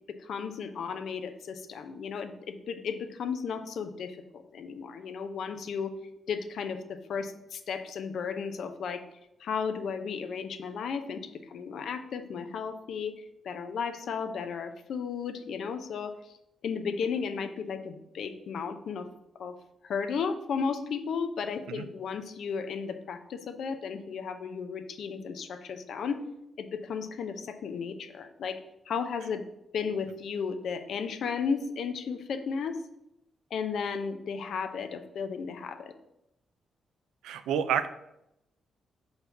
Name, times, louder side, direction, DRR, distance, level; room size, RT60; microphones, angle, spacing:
voice 1, 0.1-5.9 6.3-9.0 9.4-13.1 13.4-16.3 16.6-19.1 19.4-19.6 19.8-26.2 26.6-28.6 28.9-29.4 29.7-32.8 33.5-35.9, left 6 dB, 70° left, 8 dB, 0.6 m, -34 dB
voice 2, 37.2-37.9, right 8 dB, 85° right, 10 dB, 0.4 m, -29 dB
5.4 x 4.0 x 4.6 m, 0.85 s
supercardioid pair, 55°, 0 cm